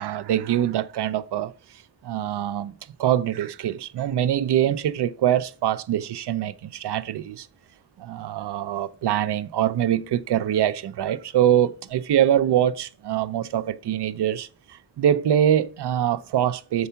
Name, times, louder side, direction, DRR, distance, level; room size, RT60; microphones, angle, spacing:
voice 1, 0.0-1.5 2.0-2.7 3.0-7.5 8.0-16.9, right 11 dB, 85° right, 0.6 m, -24 dB
6.7 x 4.8 x 5.6 m
wide cardioid pair, 130°, 39 cm